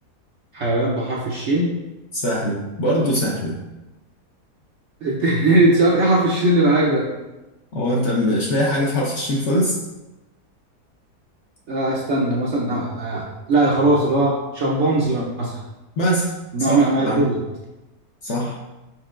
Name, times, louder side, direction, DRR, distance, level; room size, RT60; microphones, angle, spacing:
voice 1, 0.5-1.7 5.0-7.1 11.7-15.6 16.5-17.4, right 2 dB, 65° right, -4 dB, 0.7 m, -19 dB
voice 2, 2.1-3.5 7.7-9.8 16.0-16.3 16.7-16.8 17.1-17.3 18.2-18.6, equal, 60° left, -3 dB, 0.8 m, -22 dB
4.7 x 4.4 x 2.4 m, 1.0 s
omnidirectional pair, 1.7 m